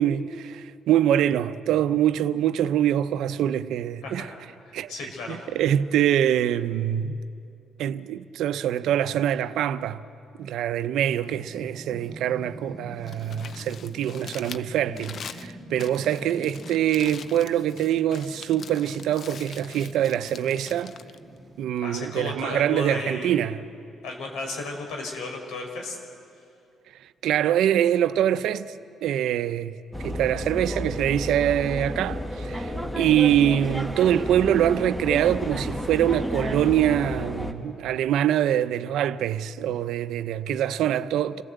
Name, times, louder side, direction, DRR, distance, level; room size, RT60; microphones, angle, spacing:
voice 1, 0.0-4.3 4.7-4.9 5.3-7.2 7.8-10.0 10.4-20.9 21.6-23.6 27.0-28.7 29.0-41.4, right 10 dB, 85° right, 0.7 m, -24 dB
voice 2, 4.0-4.4 4.6-5.5 21.8-23.5 24.0-26.0, left 3 dB, 90° left, 4.7 m, -34 dB
sound 1, 11.2-21.6, right 1 dB, 25° right, 2.0 m, -46 dB
Crumpling crinkling, 12.9-22.0, left 6 dB, 55° left, 0.7 m, -44 dB
sound 2, 29.9-37.5, equal, 5° left, 1.8 m, -31 dB
27.5 x 17.5 x 8.0 m
cardioid pair, 90°, 0 cm